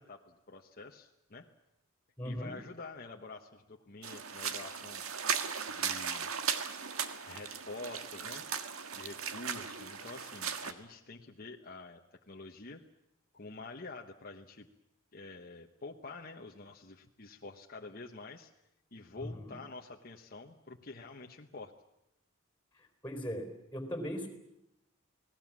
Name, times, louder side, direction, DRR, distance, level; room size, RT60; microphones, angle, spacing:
voice 1, 0.0-1.5 2.2-5.0 5.7-6.3 7.2-8.5 8.9-12.0 12.3-12.8 13.3-14.7 15.1-18.5 18.9-21.7, left 3 dB, 45° left, 2 dB, 1.2 m, -47 dB
voice 2, 2.2-2.5 19.2-19.6 22.8-24.3, equal, 10° left, 6 dB, 4.2 m, -39 dB
sound 1, 4.0-10.7, right 7 dB, 80° right, 1.6 m, -37 dB
29.5 x 19.0 x 7.4 m, 0.84 s
head